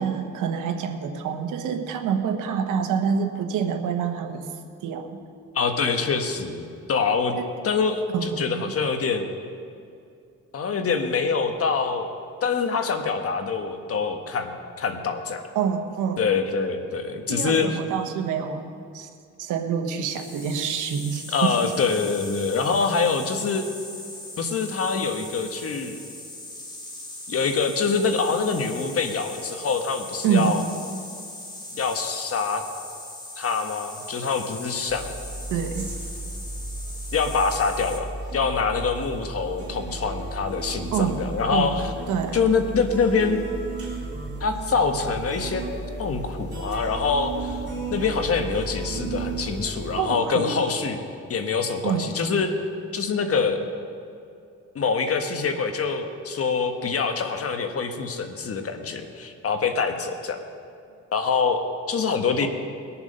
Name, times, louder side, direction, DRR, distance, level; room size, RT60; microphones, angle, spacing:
voice 1, 0.0-4.5 4.8-5.2 7.4-7.5 8.1-8.7 15.5-16.2 17.3-19.1 19.4-21.7 30.2-30.6 35.5-35.9 40.9-41.2 41.5-42.5 49.9-50.6 51.8-52.1 62.4-62.5, right 7 dB, 90° right, 6 dB, 1.2 m, -27 dB
voice 2, 5.5-7.4 7.6-9.3 10.5-12.1 12.4-15.4 16.2-17.8 21.3-23.7 24.4-26.0 27.3-30.6 31.8-32.6 33.4-35.1 37.1-41.9 42.3-43.4 44.4-45.6 46.0-47.6 47.9-51.0 51.3-52.5 52.9-53.6 54.7-60.4 61.1-62.5, left 5 dB, 50° left, 6 dB, 1.4 m, -25 dB
sound 1, 20.0-38.0, left 1 dB, 15° left, 2.2 m, -40 dB
sound 2, 34.9-50.0, right 3 dB, 35° right, 3.6 m, -34 dB
21.0 x 7.1 x 5.5 m, 2.5 s
cardioid pair, 90°, 30 cm